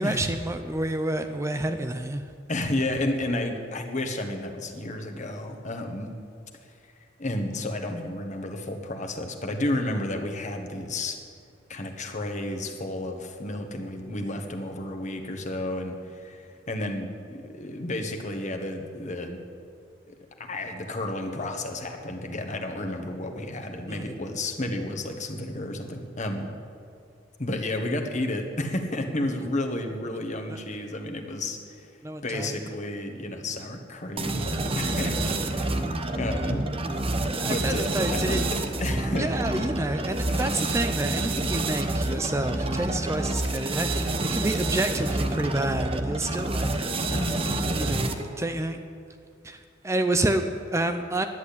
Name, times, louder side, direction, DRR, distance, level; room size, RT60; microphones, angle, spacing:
voice 1, 0.0-2.2 23.9-24.0 30.5-30.6 32.0-32.6 37.3-38.4 39.2-46.9 47.7-48.1 48.4-48.8 49.4-51.2, right 1 dB, 15° right, 7 dB, 0.5 m, -29 dB
voice 2, 2.5-6.1 7.2-11.2 11.7-19.4 20.1-20.2 20.5-26.5 27.4-31.9 32.2-36.7 37.4-39.4 40.3-40.6 47.1-48.0, left 1 dB, 40° left, 3 dB, 1.4 m, -32 dB
sound 1, 34.2-48.4, right 2 dB, 30° right, 0.9 m, -28 dB
11.0 x 10.0 x 8.6 m, 2.3 s
head